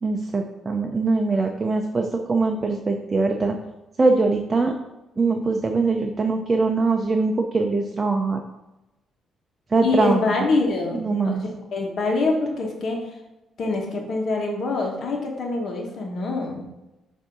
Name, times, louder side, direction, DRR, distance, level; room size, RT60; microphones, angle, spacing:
voice 1, 0.0-3.6 4.0-4.7 5.2-8.4 9.7-10.2 10.9-11.4, right 3 dB, 30° right, 3 dB, 0.6 m, -22 dB
voice 2, 9.8-13.0 13.6-16.6, left 3 dB, 55° left, 0 dB, 1.2 m, -25 dB
7.2 x 2.7 x 5.3 m, 0.98 s
cardioid pair, 90°, 0 cm